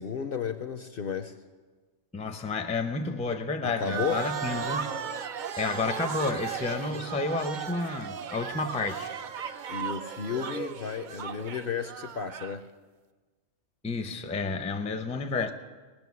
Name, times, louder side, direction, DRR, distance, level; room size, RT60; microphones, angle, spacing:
voice 1, 0.0-1.3 3.6-4.2 9.7-12.7, left 7 dB, 55° left, 9 dB, 0.7 m, -33 dB
voice 2, 2.1-4.9 5.6-9.2 13.8-15.5, left 3 dB, 10° left, 7 dB, 0.4 m, -31 dB
sound 1, 3.8-12.6, right 6 dB, 55° right, 0.5 m, -36 dB
17.5 x 6.4 x 9.5 m, 1.4 s
omnidirectional pair, 1.4 m